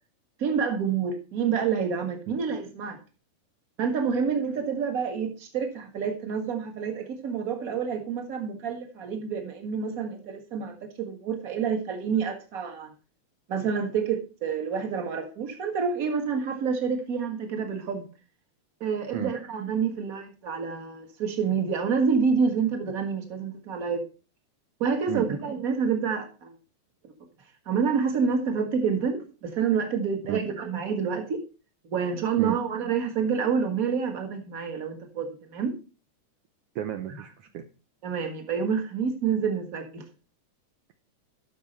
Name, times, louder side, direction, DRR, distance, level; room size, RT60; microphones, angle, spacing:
voice 1, 0.4-3.0 3.8-12.9 13.5-18.1 18.8-24.0 24.8-26.6 27.0-27.1 27.6-31.4 31.8-35.7 38.0-40.0, right 6 dB, 40° right, 5 dB, 1.4 m, -28 dB
voice 2, 36.7-37.6, right 11 dB, 80° right, 7 dB, 1.3 m, -32 dB
12.5 x 6.1 x 4.3 m, 0.34 s
omnidirectional pair, 3.6 m